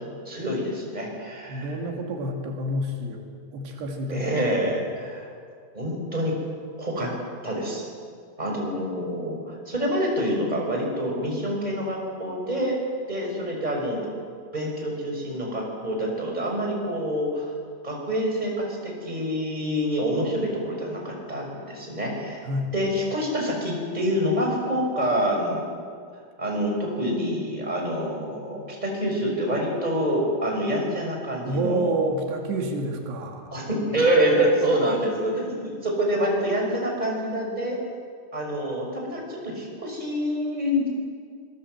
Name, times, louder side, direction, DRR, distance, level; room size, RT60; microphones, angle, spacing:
voice 1, 0.3-1.8 4.1-5.3 5.7-6.4 6.8-7.1 7.4-7.8 8.4-12.8 13.1-14.0 14.5-17.5 17.8-18.5 18.8-22.4 22.7-25.6 26.4-32.0 33.5-37.8 38.3-40.9, equal, 10° right, -1 dB, 5.6 m, -26 dB
voice 2, 1.5-3.2 3.5-4.7 22.4-22.7 31.4-33.5, right 1 dB, 85° right, 2 dB, 4.4 m, -28 dB
25.5 x 20.5 x 7.9 m, 2.1 s
omnidirectional pair, 4.7 m